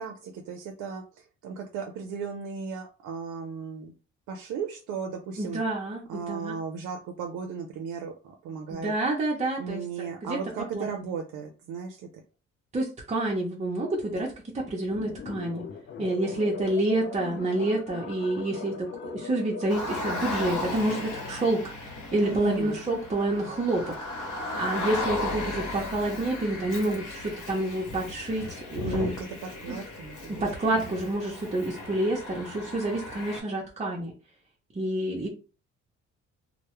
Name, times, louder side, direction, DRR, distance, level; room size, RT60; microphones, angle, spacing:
voice 1, 0.0-3.9 4.3-5.6 6.1-8.9 9.6-12.1 22.2-22.9 28.8-30.4 30.7-31.0, right 6 dB, 85° right, 3 dB, 0.5 m, -36 dB
voice 2, 5.4-6.5 8.7-10.4 10.7-10.9 12.7-15.7 16.0-29.3 29.7-29.8 30.3-34.1 34.7-35.3, right 1 dB, 25° right, -3 dB, 0.6 m, -28 dB
sound 1, 14.9-21.3, left 6 dB, 40° left, 0.5 m, -40 dB
Car, 19.7-33.4, left 2 dB, 80° left, 0.9 m, -36 dB
2.2 x 2.0 x 2.9 m, 0.34 s
cardioid pair, 90°, 30 cm